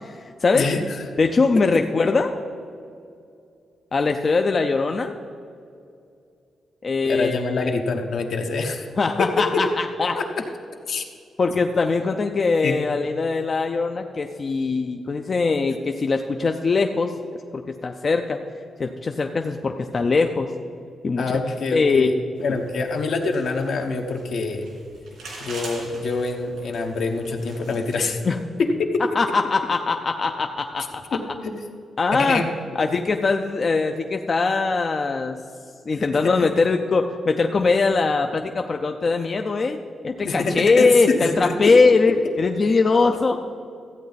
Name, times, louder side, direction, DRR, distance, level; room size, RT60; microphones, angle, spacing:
voice 1, 0.0-0.7 1.2-2.3 3.9-5.1 6.8-7.7 9.0-10.2 11.4-17.1 17.5-18.4 18.8-20.5 21.0-21.2 21.7-22.1 28.3-28.4 29.2-31.0 32.0-32.4 32.8-35.4 35.9-39.8 40.0-43.4, left 4 dB, 40° left, 4 dB, 0.4 m, -21 dB
voice 2, 0.5-1.0 1.7-1.8 7.0-8.9 9.2-9.6 10.1-10.3 10.9-11.0 12.6-12.8 21.2-24.6 25.4-28.2 28.6-29.0 31.1-31.6 32.1-32.5 35.9-36.5 40.2-41.7, left 4 dB, 70° left, 3 dB, 1.1 m, -25 dB
sound 1, 22.4-28.2, right 2 dB, 90° right, 3.0 m, -43 dB
14.0 x 8.4 x 4.0 m, 2.4 s
cardioid pair, 110°, 0 cm